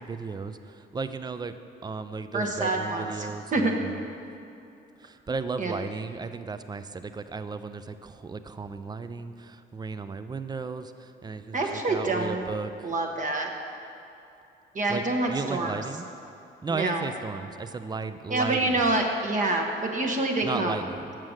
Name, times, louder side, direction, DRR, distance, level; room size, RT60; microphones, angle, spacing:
voice 1, 0.0-1.5 1.8-4.0 5.0-12.9 14.9-16.1 16.6-18.9 20.4-21.2, right 4 dB, 20° right, 11 dB, 0.4 m, -35 dB
voice 2, 2.3-3.7 5.6-5.8 11.5-12.4 12.8-13.5 14.7-15.7 16.7-17.1 18.3-20.8, right 2 dB, 40° right, 2 dB, 0.9 m, -27 dB
7.5 x 6.1 x 6.4 m, 2.6 s
cardioid pair, 90°, 20 cm